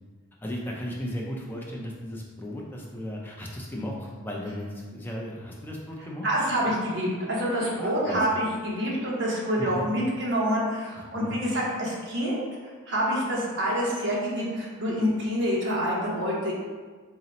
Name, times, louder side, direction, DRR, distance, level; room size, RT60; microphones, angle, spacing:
voice 1, 0.4-6.3 7.8-8.2 9.6-9.9 11.1-11.4, equal, 10° left, -3 dB, 0.4 m, -35 dB
voice 2, 6.2-12.4 12.9-16.5, equal, 55° right, -5 dB, 0.9 m, -27 dB
3.9 x 2.1 x 4.0 m, 1.5 s
head